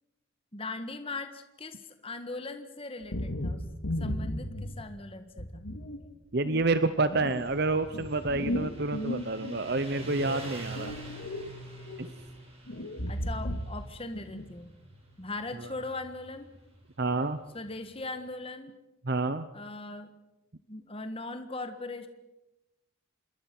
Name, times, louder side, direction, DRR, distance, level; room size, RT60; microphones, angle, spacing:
voice 1, 0.5-3.6 4.0-5.6 13.1-14.7 15.2-16.5 17.5-18.7 19.5-20.1 20.7-22.1, left 2 dB, 25° left, 8 dB, 1.6 m, -39 dB
sound 1, 3.0-4.9 5.4-6.0 6.4-9.6 10.0-11.5 11.8-12.1 12.7-13.9 14.1-14.5, left 1 dB, 85° left, 2.5 m, -35 dB
voice 2, 6.3-10.9 12.0-12.1 17.0-17.4 19.0-19.5, right 3 dB, 50° right, 12 dB, 0.9 m, -28 dB
Motorcycle, 7.0-18.1, right 2 dB, 30° right, 6.6 m, -47 dB
27.5 x 21.5 x 6.1 m, 0.96 s
head